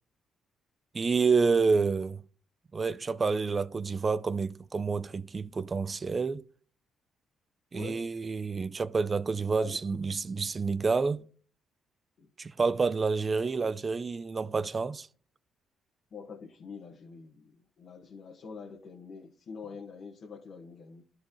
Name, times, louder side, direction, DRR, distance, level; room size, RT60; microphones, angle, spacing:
voice 1, 0.9-2.2 2.7-6.4 7.7-11.2 12.4-15.1, right 4 dB, 35° right, 0.5 m, -28 dB
voice 2, 16.1-21.0, left 5 dB, 60° left, 1.6 m, -45 dB
13.0 x 4.7 x 3.1 m
cardioid pair, 90°, 0 cm